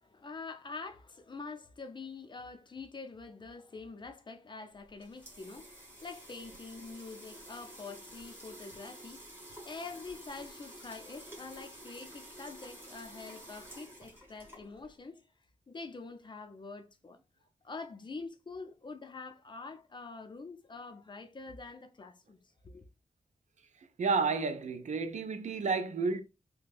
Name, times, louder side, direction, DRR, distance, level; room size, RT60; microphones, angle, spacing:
voice 1, 0.0-15.2 15.7-17.2 17.6-22.8, left 4 dB, 35° left, 0.5 m, -46 dB
sound 1, 4.7-15.0, right 1 dB, 15° right, 1.4 m, -50 dB
voice 2, 24.0-26.2, right 4 dB, 70° right, 0.5 m, -31 dB
3.3 x 2.2 x 3.3 m
wide cardioid pair, 120°, 13 cm